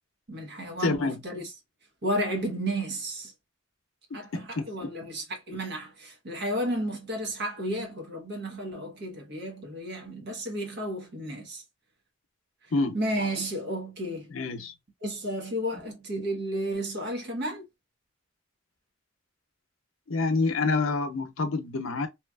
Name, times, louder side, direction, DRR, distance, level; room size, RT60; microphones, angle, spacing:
voice 1, 0.3-1.5 2.0-3.3 4.1-11.6 12.9-14.3 15.0-17.6, right 1 dB, 55° right, 1.0 m, -32 dB
voice 2, 0.8-1.2 4.1-4.9 12.7-13.0 14.3-14.7 20.1-22.1, left 3 dB, 85° left, 0.6 m, -28 dB
2.8 x 2.4 x 2.3 m
head